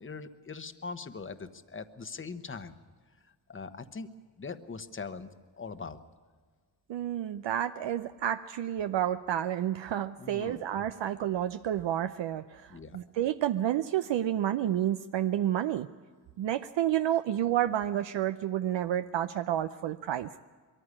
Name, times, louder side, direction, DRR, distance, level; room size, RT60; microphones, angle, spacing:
voice 1, 0.0-2.7 3.1-4.1 4.4-5.3 5.6-6.0 10.2-10.6 12.7-13.0, left 4 dB, 25° left, 11 dB, 1.1 m, -41 dB
voice 2, 6.9-15.9 16.4-20.3, right 11 dB, 75° right, 10 dB, 0.6 m, -30 dB
22.5 x 14.5 x 9.8 m, 1.5 s
cardioid pair, 85°, 44 cm